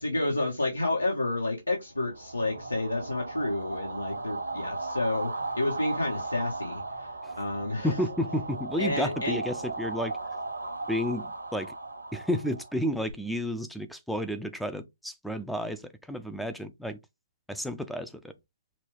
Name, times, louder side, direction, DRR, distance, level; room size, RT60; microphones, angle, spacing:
voice 1, 0.0-7.1 7.4-8.0 8.8-9.4, left 2 dB, 85° left, 1.6 m, -30 dB
sound 1, 2.0-13.1, right 2 dB, 85° right, 1.2 m, -37 dB
voice 2, 7.8-10.1 10.9-11.7 12.1-15.8 16.1-17.0 17.5-18.3, equal, ahead, 0.4 m, -31 dB
6.0 x 2.2 x 3.5 m
figure-of-eight pair, 140°, 0 cm